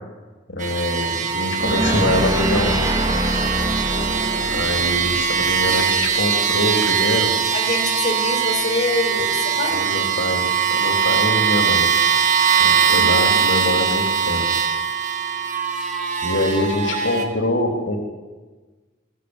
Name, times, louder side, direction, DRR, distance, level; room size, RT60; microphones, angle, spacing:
voice 1, 0.5-2.8 4.5-7.3 9.7-10.4 10.7-11.9 12.6-14.5 16.2-18.0, left 1 dB, 80° left, 3 dB, 3.7 m, -24 dB
sound 1, 0.6-17.2, right 7 dB, 40° right, 2.4 m, -21 dB
sound 2, 1.6-6.7, right 1 dB, 25° right, 3.0 m, -25 dB
voice 2, 3.9-4.6 7.5-9.8 12.8-13.4, left 2 dB, 40° left, 2 dB, 5.4 m, -26 dB
24.0 x 15.0 x 9.9 m, 1.3 s
head